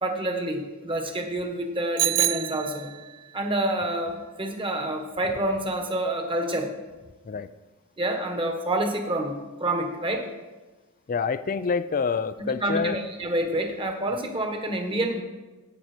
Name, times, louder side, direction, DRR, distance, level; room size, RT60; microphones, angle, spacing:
voice 1, 0.0-2.9 3.3-6.7 8.0-10.3 12.4-15.2, right 1 dB, 25° right, 3 dB, 1.5 m, -28 dB
Bicycle bell, 2.0-3.2, right 13 dB, 90° right, 0.4 m, -26 dB
voice 2, 11.1-13.0, left 5 dB, 40° left, 14 dB, 0.4 m, -27 dB
17.0 x 6.2 x 4.4 m, 1.2 s
head